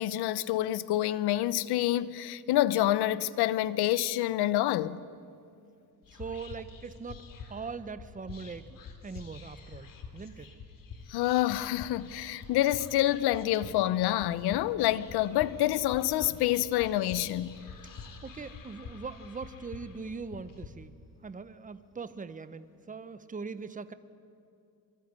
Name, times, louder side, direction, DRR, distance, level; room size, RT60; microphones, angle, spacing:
voice 1, 0.0-5.0 11.1-17.6, left 14 dB, 85° left, 1.0 m, -27 dB
Whispering, 6.0-20.7, left 5 dB, 60° left, 3.6 m, -47 dB
voice 2, 6.1-10.5 18.2-21.0 21.2-23.9, right 4 dB, 20° right, 1.2 m, -41 dB
25.0 x 23.5 x 9.8 m
cardioid pair, 100°, 38 cm